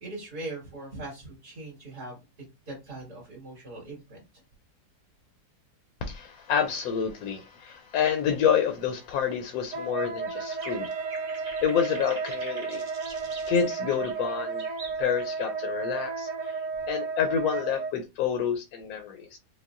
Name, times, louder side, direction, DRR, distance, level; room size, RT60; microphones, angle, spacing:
voice 1, 0.0-2.2 2.7-4.4, right 2 dB, 70° right, 2.4 m, -40 dB
voice 2, 6.0-10.9 11.6-12.8 13.5-14.7 15.0-19.4, left 8 dB, 70° left, 1.0 m, -28 dB
Wind instrument woodwind instrument, 9.7-17.9, right 4 dB, 55° right, 1.1 m, -33 dB
sound 1, 10.3-15.3, right 2 dB, 40° right, 0.6 m, -45 dB
Wind instrument woodwind instrument 2, 10.6-14.4, right 5 dB, 90° right, 0.5 m, -48 dB
5.3 x 2.2 x 2.4 m
omnidirectional pair, 1.7 m